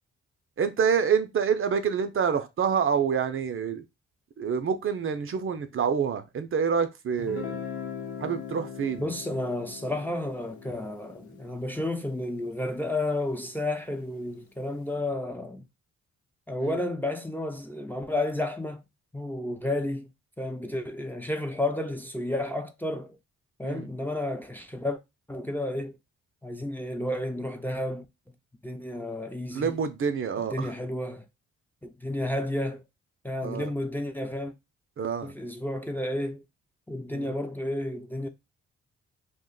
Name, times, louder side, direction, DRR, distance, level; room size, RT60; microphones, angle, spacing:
voice 1, 0.6-3.8 4.4-7.6 8.2-9.0 16.6-16.8 23.6-23.8 29.5-30.7 33.4-33.7 35.0-35.3 37.1-37.3, right 6 dB, 45° right, 0.5 m, -27 dB
Guitar, 7.2-12.9, left 7 dB, 75° left, 0.8 m, -41 dB
voice 2, 9.0-15.7 16.5-18.8 19.1-20.1 20.4-23.2 23.6-25.0 25.3-26.0 26.4-28.1 28.6-29.7 30.5-31.2 31.8-32.8 33.2-34.5 35.2-36.4 36.9-38.3, left 1 dB, 5° left, 0.5 m, -31 dB
2.4 x 2.2 x 3.7 m
cardioid pair, 65°, 29 cm